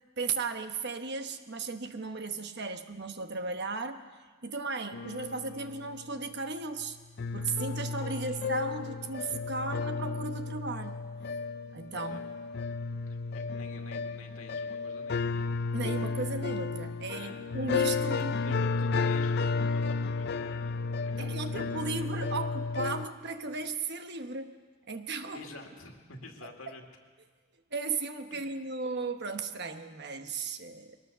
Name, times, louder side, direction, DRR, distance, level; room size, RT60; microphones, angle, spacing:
voice 1, 0.2-4.0 4.4-7.0 7.3-11.0 11.7-12.2 15.7-18.3 21.2-24.6 24.9-25.5 27.7-31.0, right 3 dB, 55° right, 7 dB, 1.2 m, -35 dB
sound 1, 4.9-6.2 6.8-6.9 7.2-23.1, left 4 dB, 50° left, 0.5 m, -33 dB
voice 2, 13.1-15.6 17.0-17.5 18.0-22.1 25.3-26.8 28.3-28.6, left 2 dB, 75° left, 3 dB, 2.3 m, -49 dB
21.5 x 18.5 x 6.8 m, 1.4 s
head